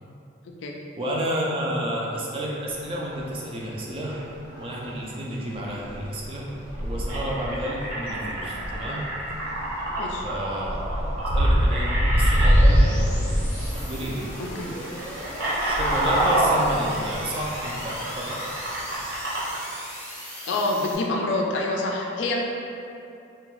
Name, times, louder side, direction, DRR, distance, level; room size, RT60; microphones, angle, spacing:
voice 1, 1.0-9.1 10.2-13.3 13.7-14.3 15.6-18.5, right 1 dB, 30° right, -4 dB, 0.3 m, -31 dB
sound 1, 2.7-2.8 3.2-3.5 4.5-5.0 5.5-14.7 15.0-19.4, equal, 90° right, 1.1 m, -25 dB
sound 2, 7.1-12.5 13.5-13.7 14.0-14.3 14.8-19.6, right 1 dB, 70° right, 0.8 m, -28 dB
sound 3, 8.3-21.0, equal, 10° left, 0.7 m, -38 dB
voice 2, 14.4-14.8 20.5-22.4, left 2 dB, 65° left, 0 dB, 0.3 m, -26 dB
2.5 x 2.3 x 3.0 m, 2.7 s
head